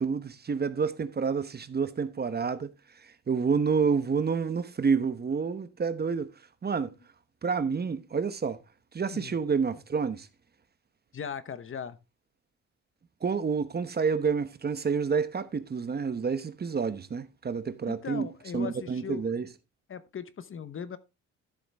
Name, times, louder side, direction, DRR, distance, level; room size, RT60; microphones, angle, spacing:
voice 1, 0.0-2.7 3.0-6.3 6.6-6.9 7.4-8.6 8.9-10.3 13.2-18.3 18.5-19.5, right 5 dB, 30° right, 1.0 m, -29 dB
voice 2, 11.1-12.0 17.9-19.3 19.9-21.0, left 7 dB, 45° left, 1.0 m, -38 dB
12.5 x 7.1 x 3.5 m
cardioid pair, 90°, 30 cm